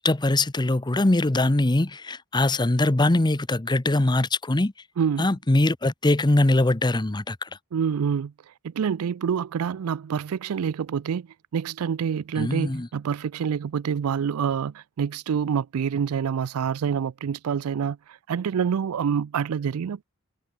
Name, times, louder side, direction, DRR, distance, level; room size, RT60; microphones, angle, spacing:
voice 1, 0.0-4.7 5.2-7.5 12.4-12.9, left 2 dB, 20° left, 0.8 m, -22 dB
voice 2, 5.0-5.3 7.7-8.3 8.6-11.3 11.5-20.0, right 7 dB, 70° right, 0.4 m, -27 dB
head